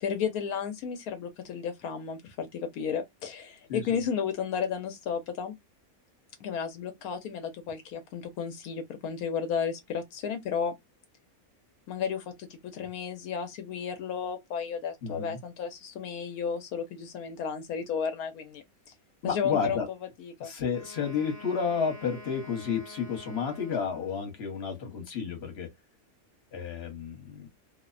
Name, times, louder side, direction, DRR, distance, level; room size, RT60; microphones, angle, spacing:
voice 1, 0.0-5.5 6.4-10.7 11.9-18.6 19.2-19.8 20.2-20.5, left 7 dB, 80° left, 1.1 m, -33 dB
voice 2, 3.7-4.0 15.0-15.4 19.2-19.9 20.4-25.7 26.5-27.5, left 6 dB, 50° left, 1.1 m, -31 dB
Wind instrument woodwind instrument, 20.7-24.4, left 2 dB, 20° right, 0.5 m, -48 dB
2.7 x 2.0 x 2.3 m
omnidirectional pair, 1.5 m